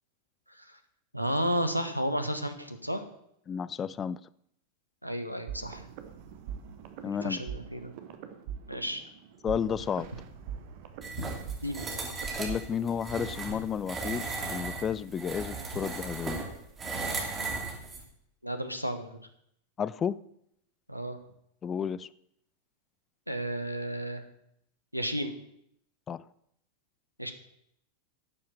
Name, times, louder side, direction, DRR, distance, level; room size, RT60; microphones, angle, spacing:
voice 1, 1.1-3.0 5.0-5.9 7.2-7.9 8.7-9.0 11.2-11.3 11.6-11.9 18.4-19.2 20.9-21.2 23.3-24.2 24.9-25.3 27.2-27.3, equal, 90° right, 1.3 m, -32 dB
voice 2, 3.5-4.3 7.0-7.4 9.4-10.1 12.4-16.4 19.8-20.2 21.6-22.1 26.1-26.2, left 7 dB, 25° left, 0.4 m, -32 dB
sound 1, 5.5-13.0, right 8 dB, 45° right, 1.3 m, -43 dB
sound 2, 11.0-18.0, right 3 dB, 20° right, 2.8 m, -36 dB
11.5 x 7.5 x 7.6 m
figure-of-eight pair, 90°, 0 cm